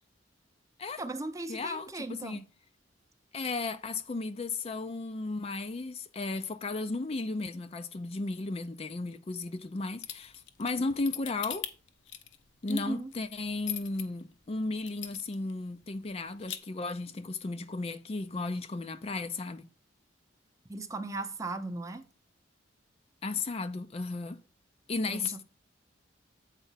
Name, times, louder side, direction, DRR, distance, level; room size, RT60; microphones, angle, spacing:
voice 1, 1.0-2.4 12.7-13.1 20.7-22.0 25.1-25.4, right 2 dB, 15° right, 0.6 m, -37 dB
voice 2, 1.5-2.4 3.3-11.7 12.6-19.7 23.2-24.4 24.9-25.4, left 3 dB, 30° left, 0.4 m, -35 dB
sound 1, 10.0-14.0 14.5-14.6 14.9-15.5 15.8-15.9 16.2-16.6, left 10 dB, 65° left, 0.8 m, -39 dB
8.2 x 4.4 x 5.6 m
head